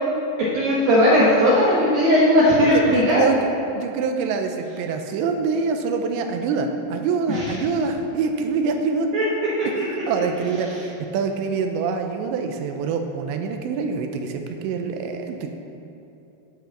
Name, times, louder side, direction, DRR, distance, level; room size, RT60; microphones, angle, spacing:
voice 1, 0.5-3.2 7.3-7.6 9.1-9.2, equal, 65° right, -7 dB, 2.7 m, -17 dB
voice 2, 2.7-3.5 3.8-9.1 9.6-9.7 10.1-15.5, right 5 dB, 90° right, 5 dB, 2.9 m, -25 dB
10.0 x 5.8 x 7.2 m, 2.9 s
omnidirectional pair, 5.1 m